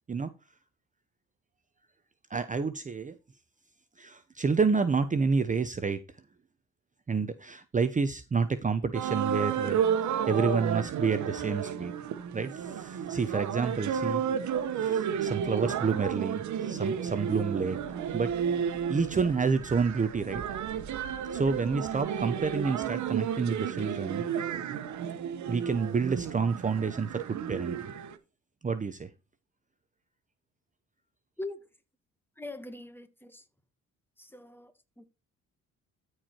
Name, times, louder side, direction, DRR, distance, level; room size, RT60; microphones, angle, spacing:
voice 1, 2.3-3.2 4.0-6.0 7.1-11.9 12.3-17.8 18.1-18.3 18.9-20.4 21.3-24.2 25.5-27.7 28.6-29.1, right 5 dB, 25° right, 0.8 m, -29 dB
sound 1, 8.9-28.1, right 8 dB, 70° right, 1.2 m, -32 dB
voice 2, 31.4-31.7 32.4-33.5 34.2-35.0, left 2 dB, 5° left, 1.7 m, -42 dB
13.5 x 4.8 x 4.5 m
cardioid pair, 90°, 30 cm